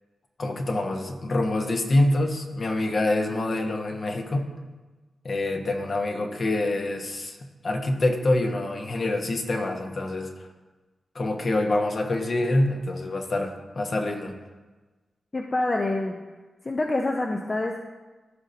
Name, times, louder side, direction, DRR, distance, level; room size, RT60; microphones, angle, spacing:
voice 1, 0.4-4.5 5.2-7.4 7.6-10.3 11.1-14.4, left 2 dB, 55° left, 3 dB, 1.1 m, -26 dB
voice 2, 15.3-16.1 16.6-17.8, left 2 dB, 35° left, 1 dB, 0.6 m, -26 dB
14.5 x 5.0 x 2.8 m, 1.2 s
cardioid pair, 60°, 0 cm